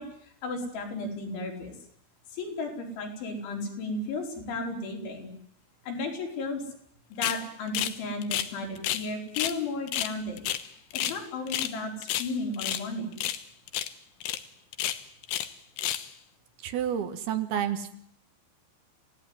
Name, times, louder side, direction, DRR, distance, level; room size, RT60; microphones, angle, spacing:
voice 1, 0.0-1.7 2.3-5.3 5.8-6.6 7.1-10.4 10.9-13.2, left 2 dB, 90° left, 3 dB, 6.9 m, -34 dB
sound 1, 7.2-7.4 7.7-9.1 9.3-9.6 9.9-11.2 11.5-11.8 12.0-12.8 13.2-13.4 13.7-13.9 14.2-14.4 14.7-15.5 15.8-16.1, left 12 dB, 70° left, 3.1 m, -30 dB
voice 2, 16.6-18.0, right 9 dB, 65° right, 9 dB, 3.2 m, -30 dB
29.0 x 17.5 x 9.7 m, 0.71 s
omnidirectional pair, 5.2 m